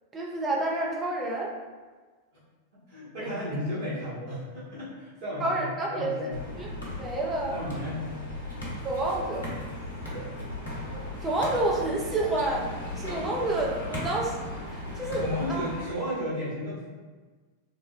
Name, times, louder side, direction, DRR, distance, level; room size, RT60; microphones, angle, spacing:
voice 1, 0.1-1.5 3.2-3.3 5.4-6.3 6.6-6.7 7.0-7.6 8.8-9.5 11.2-12.7 13.0-14.4 15.0-15.6, right 2 dB, 20° right, -2 dB, 0.6 m, -29 dB
voice 2, 2.7-6.4 7.5-8.0 10.1-10.3 15.1-16.9, left 1 dB, 55° right, -10 dB, 1.3 m, -34 dB
sound 1, 6.3-15.8, left 1 dB, 70° left, 0.9 m, -37 dB
3.7 x 2.1 x 2.4 m, 1.3 s
figure-of-eight pair, 90°, 0 cm